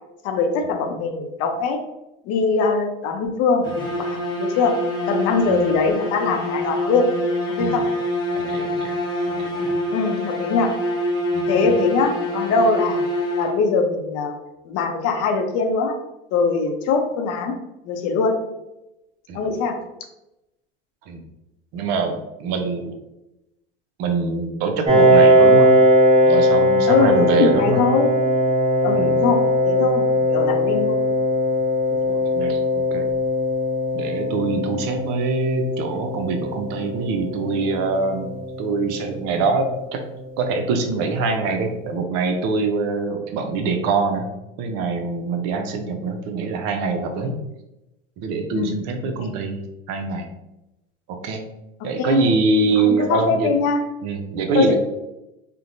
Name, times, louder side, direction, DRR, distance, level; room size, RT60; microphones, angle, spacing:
voice 1, 0.2-1.8 2.3-3.6 3.9-4.8 5.1-7.1 7.6-7.8 9.9-10.7 11.5-13.1 13.4-14.3 14.7-15.9 16.3-17.5 17.8-18.4 19.3-19.7 26.9-28.1 28.8-29.4 29.6-31.0 32.1-32.2 48.5-48.7 49.2-49.3 52.0-52.3 52.8-53.8 54.5-54.8, left 4 dB, 55° left, 4 dB, 0.5 m, -22 dB
sound 1, 3.6-13.9, left 1 dB, 15° left, 0.9 m, -25 dB
voice 2, 8.5-8.9 9.3-9.4 11.3-11.8 19.3-19.4 21.1-21.2 21.7-23.0 24.0-25.7 26.3-27.8 28.9-29.2 32.3-33.0 33.9-40.0 40.4-44.3 44.6-47.4 48.2-50.3 51.2-51.4 51.8-53.5 54.0-54.8, right 3 dB, 60° right, 5 dB, 0.5 m, -24 dB
Piano, 24.8-40.2, equal, 20° right, 1.0 m, -19 dB
2.7 x 2.1 x 2.5 m, 0.93 s
hypercardioid pair, 85°, 30 cm